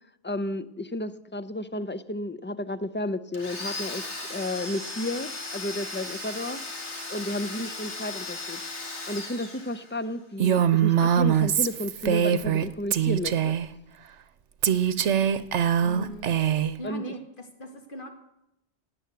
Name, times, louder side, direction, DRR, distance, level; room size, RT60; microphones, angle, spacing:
voice 1, 0.2-4.0 4.3-6.6 7.1-8.6 9.1-13.5 16.8-17.0, left 1 dB, 15° left, 12 dB, 0.4 m, -32 dB
Domestic sounds home sounds, 3.3-10.1, left 2 dB, 80° left, 2.5 m, -37 dB
Female speech woman speaking, 10.4-12.7 12.9-13.7 14.6-16.8, right 9 dB, 85° right, 1.1 m, -23 dB
voice 2, 15.8-16.3 16.8-18.1, equal, 50° left, 5 dB, 2.2 m, -38 dB
17.5 x 9.4 x 8.1 m, 0.83 s
omnidirectional pair, 1.2 m